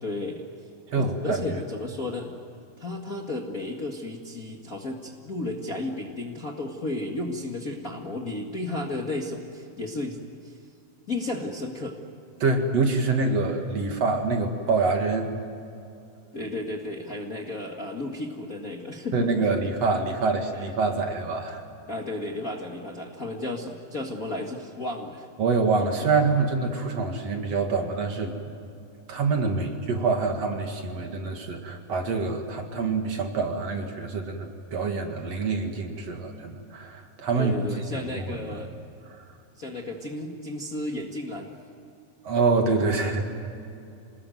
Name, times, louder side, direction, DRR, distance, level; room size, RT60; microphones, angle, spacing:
voice 1, 0.0-0.4 0.9-2.3 2.8-10.6 11.1-12.0 16.3-19.4 21.9-25.3 29.6-29.7 37.4-38.8 39.6-41.5, left 2 dB, 30° left, 0 dB, 1.8 m, -33 dB
voice 2, 0.9-1.4 12.4-15.4 19.1-21.6 25.4-28.4 29.1-38.6 39.0-39.2 42.2-43.2, right 4 dB, 50° right, 4 dB, 3.0 m, -26 dB
27.0 x 20.0 x 9.3 m, 2.6 s
omnidirectional pair, 3.8 m